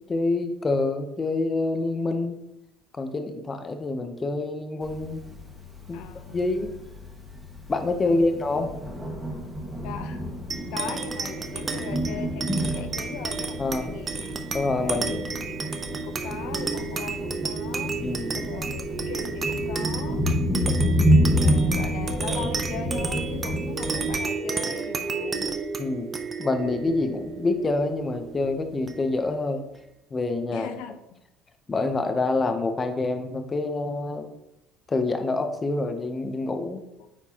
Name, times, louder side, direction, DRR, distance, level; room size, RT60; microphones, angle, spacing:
voice 1, 0.0-2.4 3.0-5.2 5.9-6.0 6.3-6.7 7.7-8.7 13.6-13.9 14.5-15.2 18.0-18.4 20.2-20.4 25.8-26.1 26.4-29.6 30.1-30.7 31.7-34.3 34.9-36.8, left 3 dB, 20° left, 7 dB, 0.6 m, -26 dB
Thunder, 4.8-24.2, equal, 5° right, 1.4 m, -29 dB
voice 2, 5.9-6.4 8.1-8.3 9.8-10.3 10.7-14.4 14.8-17.9 18.4-20.3 21.2-25.6 30.5-31.2 37.0-37.1, left 7 dB, 80° left, 8 dB, 0.5 m, -39 dB
sound 1, 10.5-29.3, right 4 dB, 25° right, 0.5 m, -32 dB
8.9 x 4.4 x 2.8 m, 0.86 s
cardioid pair, 140°, 0 cm